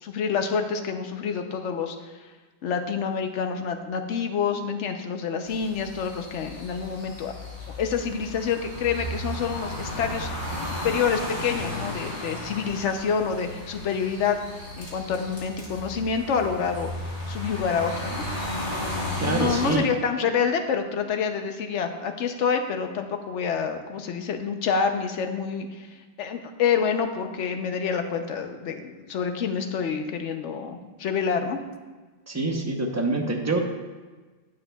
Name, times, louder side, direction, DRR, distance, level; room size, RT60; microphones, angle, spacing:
voice 1, 0.0-2.1 2.6-7.3 7.8-10.3 10.8-14.4 14.8-16.9 17.3-18.3 19.2-25.9 26.2-31.6, left 6 dB, 80° left, 6 dB, 1.0 m, -27 dB
sound 1, 5.5-19.8, left 1 dB, 40° left, 1.7 m, -34 dB
voice 2, 19.2-19.9 32.3-33.6, right 2 dB, 15° right, 1 dB, 0.7 m, -26 dB
11.0 x 6.7 x 2.3 m, 1.3 s
omnidirectional pair, 1.2 m